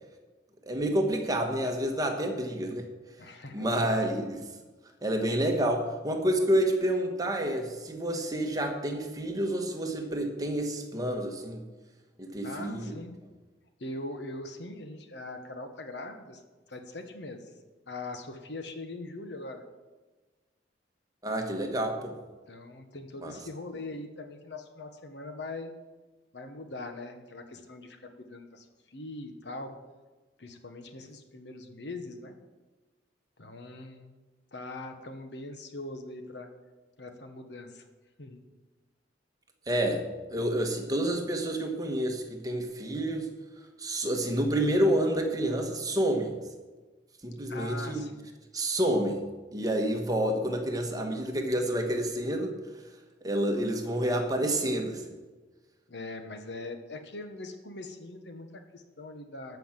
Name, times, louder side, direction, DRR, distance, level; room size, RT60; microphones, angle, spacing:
voice 1, 0.6-2.8 3.5-4.5 5.0-11.6 12.2-13.0 21.2-22.1 23.2-23.3 39.7-40.0 40.3-43.3 43.8-46.3 47.2-48.0 48.5-49.2 49.5-52.5 53.2-55.1, right 1 dB, 20° right, 3 dB, 1.4 m, -29 dB
voice 2, 3.2-3.9 12.4-13.1 13.8-16.4 16.7-17.4 17.9-19.6 22.5-25.7 26.3-29.7 30.4-32.4 33.4-34.2 34.5-36.5 37.0-37.9 38.2-38.4 47.5-48.3 55.9-59.6, left 2 dB, 70° left, 6 dB, 1.2 m, -41 dB
13.0 x 5.8 x 7.4 m, 1.2 s
head